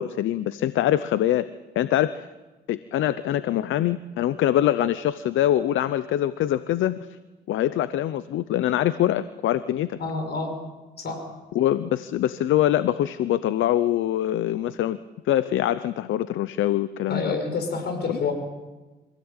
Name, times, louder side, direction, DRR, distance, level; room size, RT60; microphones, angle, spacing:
voice 1, 0.0-1.5 1.7-2.3 2.7-7.0 7.5-10.0 11.5-15.0 15.3-17.4 18.1-18.2, left 12 dB, 75° left, 14 dB, 0.7 m, -24 dB
voice 2, 10.0-10.6 11.0-11.3 17.1-18.3, left 4 dB, 55° left, 5 dB, 6.8 m, -28 dB
25.5 x 16.5 x 9.0 m, 1.2 s
cardioid pair, 90°, 20 cm